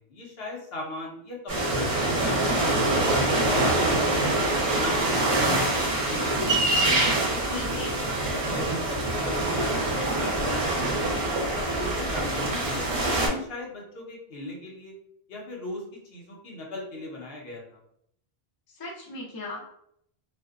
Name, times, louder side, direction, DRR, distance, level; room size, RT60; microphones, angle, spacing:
voice 1, 0.0-2.8 3.2-6.7 7.3-7.8 8.1-11.2 11.5-14.9 15.3-15.8 16.1-17.8, left 2 dB, 70° left, -2 dB, 0.9 m, -38 dB
sound 1, 1.5-13.3, right 2 dB, 40° right, 0.6 m, -25 dB
voice 2, 7.5-7.9 18.8-19.8, left 1 dB, 30° left, -3 dB, 0.4 m, -38 dB
2.5 x 2.1 x 2.4 m, 0.71 s
omnidirectional pair, 1.1 m